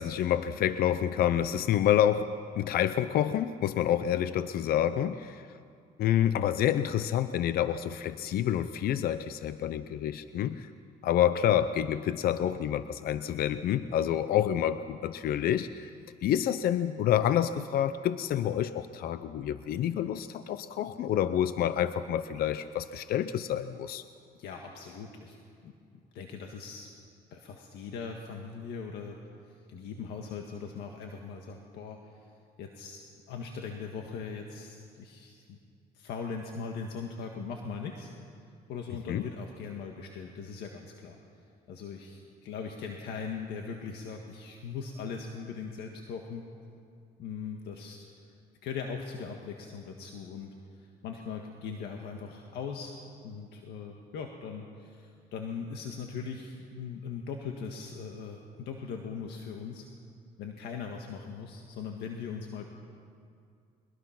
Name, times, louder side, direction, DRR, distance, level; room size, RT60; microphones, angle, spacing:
voice 1, 0.0-5.4 6.0-10.7 11.0-15.9 16.2-24.0 39.1-39.2, left 10 dB, 60° left, 12 dB, 0.7 m, -28 dB
voice 2, 24.4-25.7 26.1-26.9 27.3-32.3 32.6-35.6 35.9-38.1 38.7-41.2 41.7-46.4 47.2-48.3 48.6-59.9 60.4-62.7, left 5 dB, 80° left, 2 dB, 1.7 m, -40 dB
22.0 x 21.5 x 5.9 m, 2.3 s
cardioid pair, 110°, 17 cm